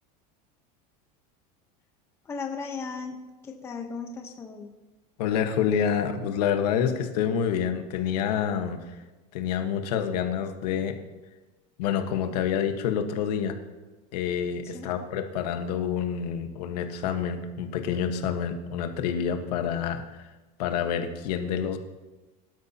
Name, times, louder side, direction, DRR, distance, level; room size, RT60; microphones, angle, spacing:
voice 1, 2.2-3.2 3.4-4.7 14.6-14.9, left 5 dB, 15° left, 2 dB, 1.0 m, -36 dB
voice 2, 5.2-8.8 9.3-11.0 11.8-13.6 14.1-20.3 20.6-21.8, left 8 dB, 75° left, 6 dB, 1.5 m, -28 dB
22.5 x 12.5 x 2.9 m, 1.2 s
supercardioid pair, 180°, 20 cm